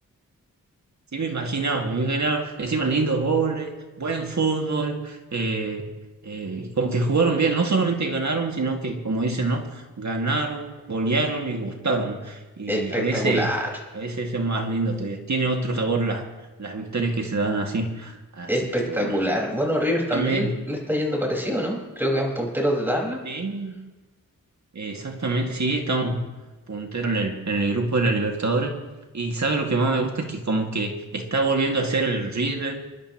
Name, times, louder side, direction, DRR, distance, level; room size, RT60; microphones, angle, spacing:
voice 1, 1.1-3.7 4.0-5.9 6.2-13.5 13.9-16.3 16.6-18.5 18.8-19.2 20.1-20.6 23.2-23.9 24.7-26.2 26.7-28.8 29.1-32.8, right 3 dB, 55° right, 2 dB, 2.0 m, -25 dB
voice 2, 12.7-13.6 18.5-23.2, equal, 5° right, -2 dB, 4.8 m, -25 dB
28.0 x 11.5 x 3.0 m, 1.1 s
wide cardioid pair, 70°, 35 cm